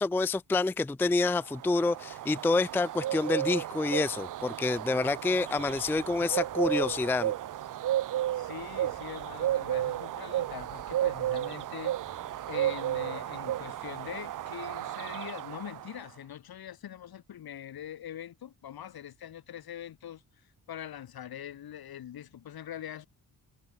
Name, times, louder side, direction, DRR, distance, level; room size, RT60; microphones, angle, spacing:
voice 1, 0.0-7.3, left 3 dB, 5° left, 0.4 m, -28 dB
sound 1, 1.4-16.0, right 12 dB, 55° right, 0.6 m, -33 dB
sound 2, 3.8-14.9, right 12 dB, 85° right, 3.5 m, -57 dB
sound 3, 5.6-14.5, right 5 dB, 35° right, 6.7 m, -55 dB
voice 2, 8.1-23.1, left 10 dB, 75° left, 5.9 m, -43 dB
cardioid pair, 115°, 37 cm